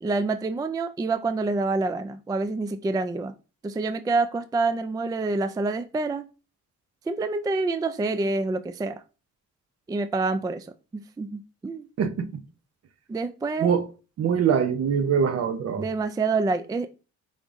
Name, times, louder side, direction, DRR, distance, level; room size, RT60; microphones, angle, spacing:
voice 1, 0.0-3.4 3.6-6.3 7.1-9.0 9.9-11.9 13.1-13.7 15.8-16.9, right 3 dB, 15° right, 0.3 m, -27 dB
voice 2, 12.0-12.4 13.6-13.9 14.2-15.9, right 7 dB, 55° right, 0.8 m, -23 dB
5.3 x 3.5 x 2.6 m
cardioid pair, 90°, 30 cm